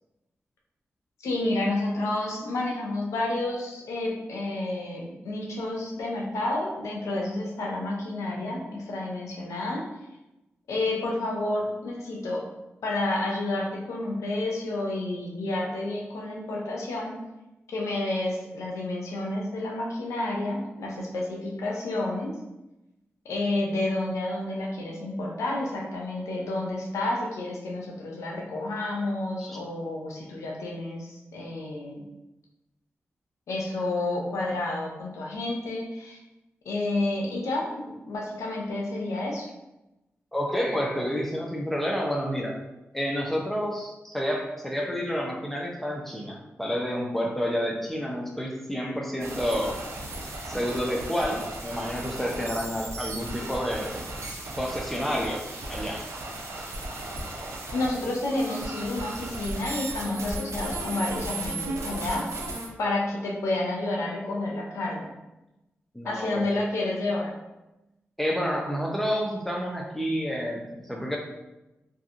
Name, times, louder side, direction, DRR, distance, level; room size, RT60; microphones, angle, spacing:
voice 1, 1.2-9.9 10.7-12.4 12.8-17.2 17.7-22.3 23.3-32.0 33.5-36.2 36.7-39.5 57.7-62.3 62.8-65.1 66.0-67.3, left 2 dB, 90° left, -2 dB, 0.5 m, -30 dB
voice 2, 40.3-42.5 42.9-49.8 50.4-54.1 54.6-56.1 65.9-66.5 68.2-71.2, equal, 5° left, -1 dB, 0.6 m, -29 dB
sound 1, 49.2-62.7, right 2 dB, 70° right, 0.5 m, -36 dB
2.7 x 2.4 x 2.4 m, 0.97 s
cardioid pair, 45°, 5 cm